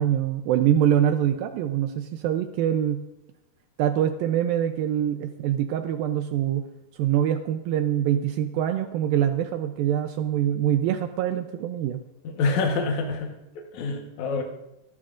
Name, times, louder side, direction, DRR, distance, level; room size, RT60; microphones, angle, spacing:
voice 1, 0.0-3.0 3.8-6.7 6.9-12.0, right 10 dB, 85° right, 7 dB, 2.0 m, -24 dB
voice 2, 12.2-13.3 13.7-14.4, left 4 dB, 65° left, 1 dB, 2.0 m, -26 dB
27.5 x 12.0 x 2.5 m, 0.89 s
omnidirectional pair, 4.9 m